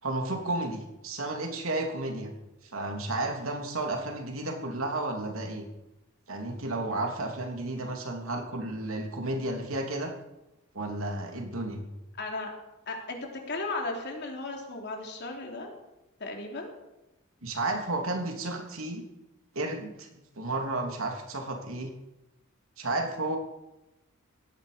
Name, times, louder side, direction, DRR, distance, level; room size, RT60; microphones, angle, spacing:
voice 1, 0.0-2.3 2.6-5.6 6.3-10.1 10.7-11.8 17.4-19.0 19.5-20.1 20.4-21.9 22.8-23.4, right 2 dB, 75° right, 2 dB, 3.2 m, -32 dB
voice 2, 12.2-12.5 12.9-15.7 16.2-16.7, left 2 dB, 55° left, 1 dB, 3.5 m, -35 dB
17.5 x 13.5 x 5.2 m, 0.96 s
head